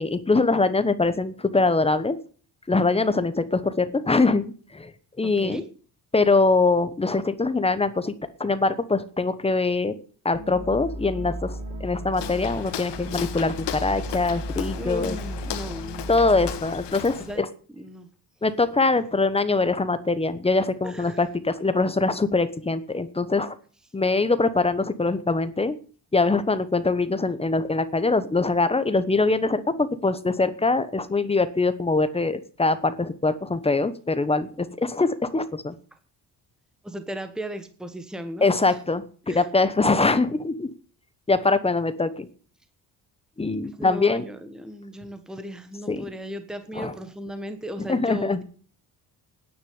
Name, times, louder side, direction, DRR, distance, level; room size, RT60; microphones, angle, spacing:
voice 1, 0.0-2.2 2.7-4.9 5.2-5.6 6.1-8.1 8.4-9.9 10.2-15.2 16.1-17.5 18.4-23.5 23.9-25.7 26.1-35.7 38.4-40.7 41.3-42.3 43.4-44.2 45.9-46.0 46.8-46.9 47.9-48.4, left 3 dB, 15° left, 13 dB, 1.0 m, -23 dB
voice 2, 5.2-5.6 14.7-16.1 17.2-17.5 17.7-18.1 19.0-19.2 20.8-21.2 36.8-38.8 39.3-39.5 43.8-48.4, equal, ahead, 9 dB, 1.3 m, -36 dB
sound 1, 10.3-16.5, right 1 dB, 50° right, 2.9 m, -35 dB
Walk footsteps, 12.1-17.4, left 11 dB, 80° left, 1.6 m, -36 dB
10.0 x 10.0 x 9.5 m, 0.43 s
cardioid pair, 165°, 42 cm